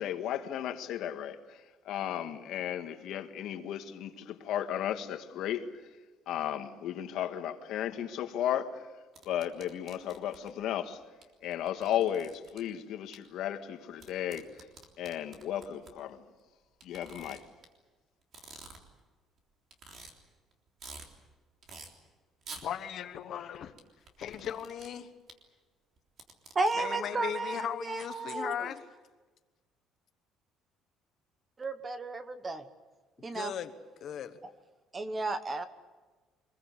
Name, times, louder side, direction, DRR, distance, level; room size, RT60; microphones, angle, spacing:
voice 1, 0.0-1.6 1.9-5.7 6.3-8.8 9.3-11.0 11.4-14.5 15.0-16.2 16.8-17.4, left 10 dB, 60° left, 1.7 m, -34 dB
sound 1, 9.1-10.5 11.2-11.3 11.5-12.6 13.1-13.2 14.0-15.9 16.8-17.7 18.2-19.0 19.4-19.5 19.7-20.1 20.5-21.1 21.6-21.9 22.4-22.6 23.8-24.9 25.3-25.4 26.0-26.7, right 4 dB, 40° right, 3.5 m, -48 dB
voice 2, 22.6-23.7 24.2-25.1 26.8-28.8 33.3-33.7 34.0-34.4, left 9 dB, 45° left, 1.2 m, -37 dB
voice 3, 26.5-28.7 31.6-32.6 33.2-33.5 34.9-35.6, right 3 dB, 20° right, 1.1 m, -33 dB
25.5 x 21.5 x 8.3 m
cardioid pair, 180°, 0 cm